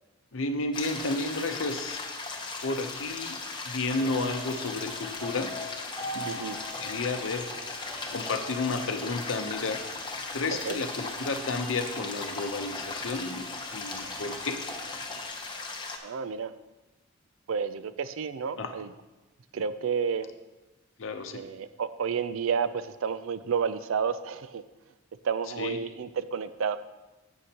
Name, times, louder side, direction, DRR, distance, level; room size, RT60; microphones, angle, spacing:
voice 1, 0.3-2.0 2.6-3.4 3.7-5.5 6.1-7.5 8.1-9.8 10.3-13.5 13.7-14.6 18.6-18.7 21.0-21.4 25.6-25.8, left 3 dB, 65° left, 7 dB, 0.7 m, -32 dB
sound 1, 0.7-16.0, left 3 dB, 20° left, 0.9 m, -38 dB
sound 2, 3.9-15.2, left 1 dB, 5° left, 1.5 m, -43 dB
voice 2, 6.3-6.6 10.7-10.8 16.0-16.5 17.5-18.9 19.5-20.3 21.3-24.6 25.2-26.8, right 6 dB, 70° right, 13 dB, 0.4 m, -31 dB
11.5 x 8.0 x 2.9 m, 1.1 s
head